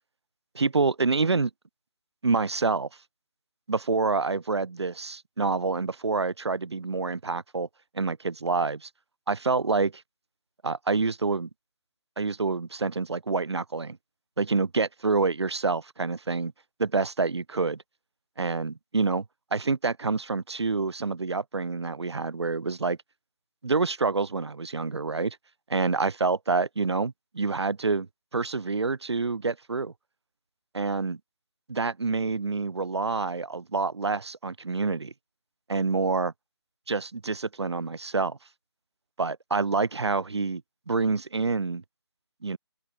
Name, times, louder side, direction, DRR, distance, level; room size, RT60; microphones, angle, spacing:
voice 1, 0.5-1.5 2.2-2.9 3.7-7.7 7.9-8.9 9.3-10.0 10.6-11.5 12.2-14.0 14.4-16.5 16.8-17.8 18.4-19.2 19.5-23.0 23.6-25.4 25.7-28.1 28.3-29.9 30.7-31.2 31.7-35.1 35.7-36.3 36.9-38.4 39.2-40.6 40.9-41.8 42.4-42.6, right 4 dB, 70° right, 4.3 m, -27 dB
hypercardioid pair, 165°, 14 cm